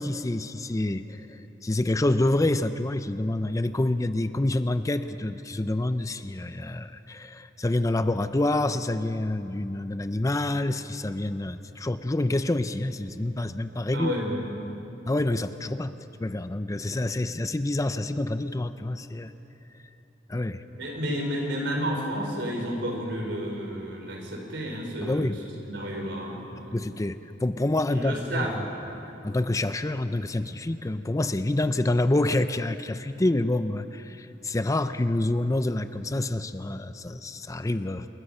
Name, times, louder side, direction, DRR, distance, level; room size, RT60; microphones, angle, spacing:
voice 1, 0.0-14.1 15.1-15.9 16.2-19.3 20.3-20.6 25.0-25.4 26.7-28.5 29.2-38.1, left 1 dB, 20° left, 11 dB, 0.5 m, -27 dB
voice 2, 13.9-14.5 20.7-26.8 27.9-28.6 28.8-29.0, equal, 70° right, 1 dB, 4.6 m, -31 dB
28.5 x 21.0 x 5.6 m, 3.0 s
head